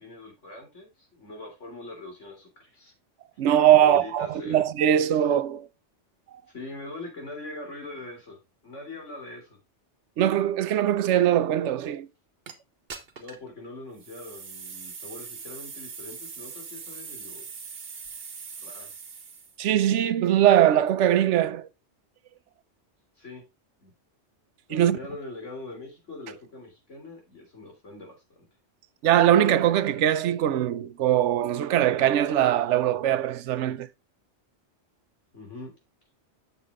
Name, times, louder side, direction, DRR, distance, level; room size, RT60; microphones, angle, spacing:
voice 1, 0.0-2.9 3.8-4.6 6.5-9.6 13.2-17.5 18.6-18.9 23.2-23.4 23.8-23.9 24.7-28.2 35.3-35.7, left 2 dB, 80° left, 3.6 m, -42 dB
voice 2, 3.4-5.7 10.2-12.1 19.6-21.7 24.7-25.0 29.0-33.9, right 11 dB, 85° right, 0.9 m, -21 dB
sound 1, 12.5-12.6 12.9-13.5 14.0-19.6, right 5 dB, 55° right, 1.2 m, -41 dB
7.2 x 7.0 x 3.5 m
omnidirectional pair, 1.2 m